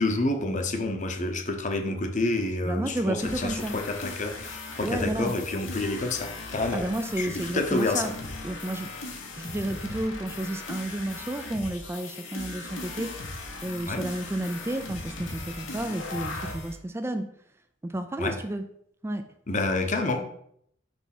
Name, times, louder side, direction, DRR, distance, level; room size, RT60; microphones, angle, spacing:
voice 1, 0.0-6.8 7.2-8.0 13.9-14.0 18.2-18.4 19.5-20.2, left 2 dB, 40° left, 5 dB, 0.8 m, -28 dB
voice 2, 2.6-3.8 4.8-5.3 6.7-8.1 8.4-8.9 9.4-17.3 17.8-18.6 19.0-19.2, right 1 dB, 15° right, 7 dB, 0.3 m, -31 dB
sound 1, 3.2-16.7, left 3 dB, 85° left, 1.2 m, -38 dB
6.1 x 3.4 x 5.9 m, 0.69 s
head